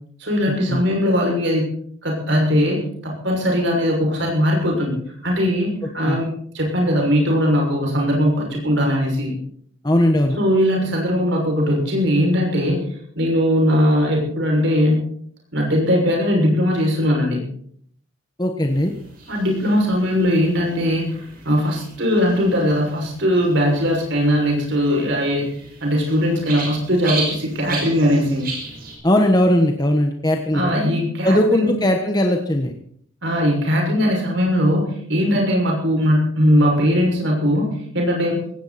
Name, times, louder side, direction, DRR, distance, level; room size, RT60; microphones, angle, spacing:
voice 1, 0.2-1.7 2.0-6.3 6.5-9.3 10.4-12.8 13.1-15.0 15.5-17.4 19.3-25.5 25.8-28.5 30.5-31.7 33.2-37.7 37.9-38.4, equal, 60° right, 0 dB, 6.3 m, -19 dB
voice 2, 9.8-10.4 18.4-18.9 29.0-30.7 31.2-32.7, left 1 dB, 20° left, 3 dB, 1.3 m, -18 dB
sound 1, 18.7-29.0, right 3 dB, 45° right, 5.8 m, -36 dB
18.5 x 16.0 x 4.3 m, 0.62 s
head